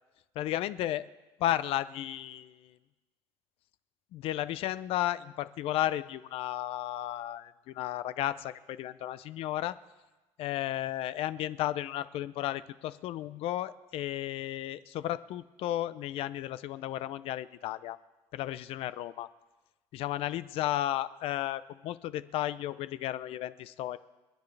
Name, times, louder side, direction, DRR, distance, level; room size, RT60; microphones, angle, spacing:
voice 1, 0.3-1.0 1.4-2.8 4.1-9.8 10.4-18.0 18.3-19.3 19.9-24.0, left 13 dB, 70° left, 15 dB, 0.6 m, -33 dB
29.0 x 10.5 x 3.4 m, 1.1 s
cardioid pair, 105°, 10 cm